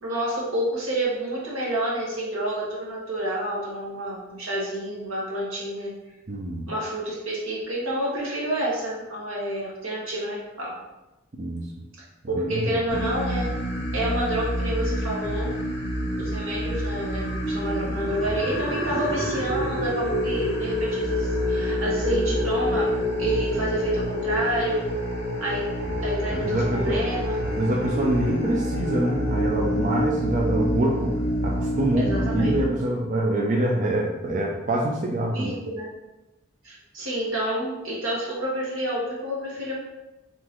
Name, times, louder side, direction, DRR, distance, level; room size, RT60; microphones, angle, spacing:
voice 1, 0.0-5.9 6.7-10.8 12.3-13.5 13.9-15.5 16.2-22.9 23.2-24.9 25.4-25.7 26.0-27.4 32.0-32.6 35.3-35.9 36.6-39.7, right 1 dB, 85° right, -4 dB, 1.5 m, -29 dB
voice 2, 6.3-6.7 11.3-11.7 12.3-12.8 25.9-26.0 26.3-27.0 27.4-31.1 31.4-35.6, right 1 dB, 35° right, -2 dB, 0.4 m, -25 dB
sound 1, 12.9-32.6, equal, 55° left, 0.9 m, -27 dB
3.9 x 3.7 x 3.0 m, 0.98 s
head